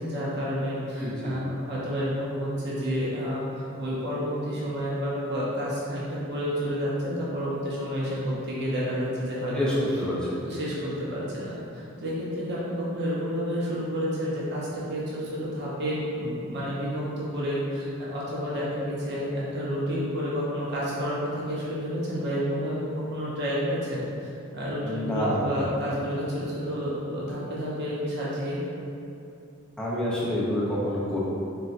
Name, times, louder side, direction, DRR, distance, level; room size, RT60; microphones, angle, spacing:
voice 1, 0.0-9.7 10.4-28.6, equal, 55° right, -7 dB, 0.6 m, -30 dB
voice 2, 1.0-1.4 9.6-10.4 24.8-25.6 29.8-31.2, equal, 5° left, -8 dB, 0.4 m, -27 dB
3.9 x 2.1 x 2.4 m, 2.7 s
head